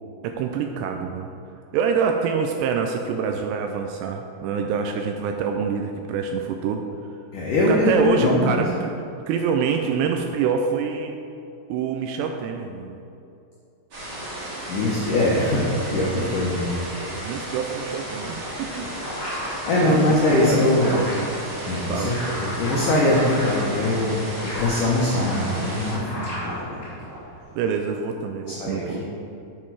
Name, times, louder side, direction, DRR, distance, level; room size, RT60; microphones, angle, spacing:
voice 1, 0.2-1.3 1.7-6.9 7.7-8.9 9.3-11.2 11.7-13.0 17.1-18.9 19.3-20.1 20.5-21.3 21.9-22.1 27.6-29.0, right 6 dB, 85° right, 3 dB, 2.5 m, -26 dB
voice 2, 7.3-8.6 14.7-16.7 19.7-21.0 21.6-26.9 28.5-29.0, left 1 dB, 80° left, -4 dB, 1.8 m, -22 dB
sound 1, 13.9-25.9, right 1 dB, 35° right, 2.3 m, -34 dB
sound 2, 18.2-27.4, left 1 dB, 30° left, 1.9 m, -35 dB
8.9 x 7.5 x 4.7 m, 2.7 s
omnidirectional pair, 5.4 m